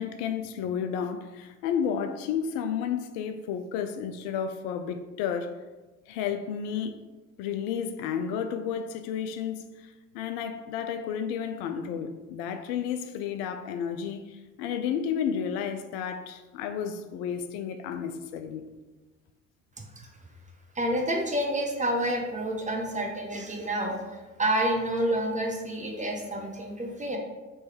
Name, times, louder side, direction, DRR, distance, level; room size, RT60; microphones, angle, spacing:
voice 1, 0.0-5.6 6.1-7.0 7.4-18.7, left 7 dB, 60° left, 8 dB, 0.5 m, -32 dB
voice 2, 20.7-24.0 24.4-27.2, right 1 dB, 20° right, 1 dB, 0.8 m, -28 dB
3.4 x 3.1 x 4.5 m, 1.2 s
hypercardioid pair, 55°, 40 cm